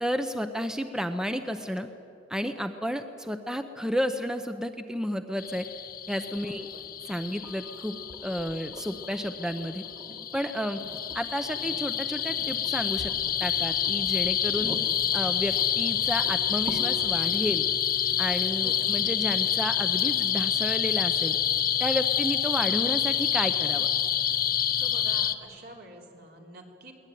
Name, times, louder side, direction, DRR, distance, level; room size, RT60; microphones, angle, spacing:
voice 1, 0.0-1.9 2.3-5.7 6.1-6.7 7.1-9.8 10.3-10.8 11.1-13.1 13.4-14.7 15.1-17.7 18.2-21.3 21.8-23.9, equal, 5° right, 8 dB, 0.7 m, -31 dB
sound 1, 5.4-25.3, left 9 dB, 55° left, 1.0 m, -28 dB
voice 2, 6.4-6.8 14.5-14.9 18.6-18.9 24.8-26.9, right 1 dB, 60° right, 1 dB, 3.5 m, -47 dB
sound 2, 7.4-21.4 23.1-23.2, right 1 dB, 25° right, 1.7 m, -47 dB
22.5 x 19.0 x 9.3 m, 2.7 s
head